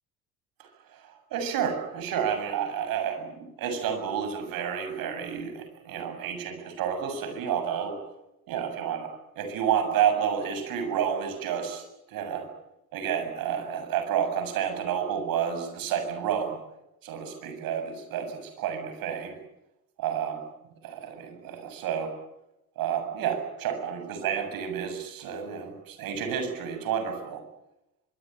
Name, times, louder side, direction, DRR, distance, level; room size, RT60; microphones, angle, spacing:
voice 1, 1.0-8.0 8.5-12.5 12.9-16.6 17.0-19.4 20.0-20.4 20.8-22.1 22.8-27.4, right 8 dB, 50° right, 7 dB, 7.4 m, -30 dB
24.0 x 24.0 x 9.1 m, 0.91 s
figure-of-eight pair, 60°, 44 cm